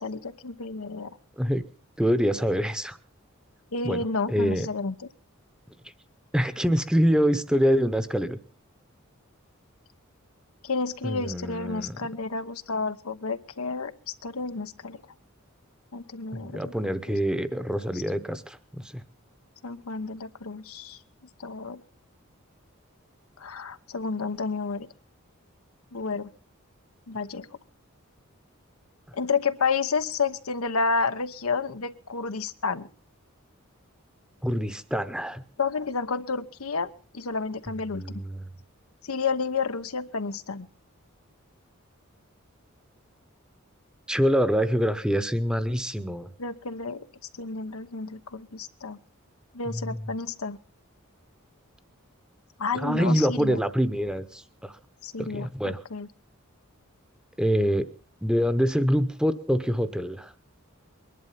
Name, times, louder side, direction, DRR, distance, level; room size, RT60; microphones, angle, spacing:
voice 1, 0.0-1.2 3.7-4.9 10.6-13.9 14.2-15.0 15.9-16.7 19.6-21.0 21.4-21.8 23.4-24.9 25.9-26.3 27.1-27.5 29.1-32.9 35.6-38.2 39.0-40.7 46.4-47.0 47.3-49.0 49.5-50.6 52.6-53.6 55.0-56.1, left 4 dB, 90° left, 10 dB, 1.0 m, -30 dB
voice 2, 2.0-3.0 3.8-4.7 6.3-8.4 11.0-12.0 16.3-19.0 34.4-35.4 37.9-38.5 44.1-46.3 49.6-50.1 52.7-54.8 55.2-55.8 57.4-57.9 58.2-60.3, equal, 5° right, 12 dB, 0.8 m, -25 dB
21.5 x 11.0 x 5.7 m, 0.40 s
head